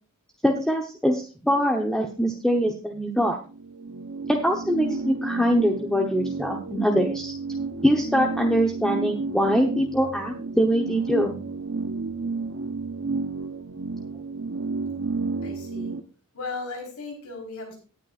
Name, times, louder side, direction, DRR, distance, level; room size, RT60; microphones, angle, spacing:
voice 1, 0.4-3.4 4.3-7.3 7.8-11.3, equal, 5° left, 1 dB, 1.0 m, -23 dB
sound 1, 3.5-16.0, right 4 dB, 60° right, 1.0 m, -31 dB
voice 2, 15.4-15.9 16.3-17.7, left 3 dB, 80° left, 0 dB, 4.2 m, -36 dB
18.5 x 9.1 x 2.5 m, 0.36 s
head